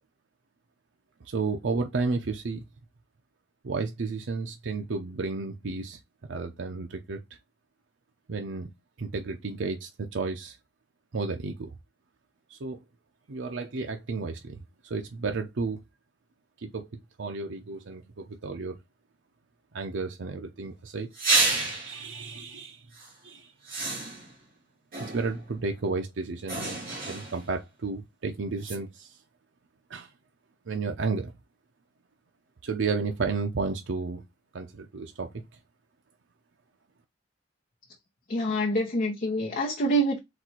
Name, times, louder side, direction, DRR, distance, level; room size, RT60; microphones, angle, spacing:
voice 1, 1.2-2.6 3.6-6.0 6.3-7.2 8.3-8.7 9.0-10.6 11.1-11.7 12.5-12.8 13.3-15.8 16.6-16.9 17.2-18.8 19.7-21.1 21.4-22.9 23.2-23.5 25.0-26.8 27.1-29.1 29.9-30.1 30.7-31.3 32.6-34.2 34.5-35.4, right 4 dB, 70° right, 0.6 m, -32 dB
sound 1, 21.1-22.0 22.9-23.1 23.7-24.4 24.9-25.5 26.5-27.5 28.6-28.8, right 3 dB, 50° right, 2.0 m, -29 dB
voice 2, 38.3-40.2, right 1 dB, 50° left, 0.9 m, -26 dB
4.2 x 2.5 x 4.3 m
head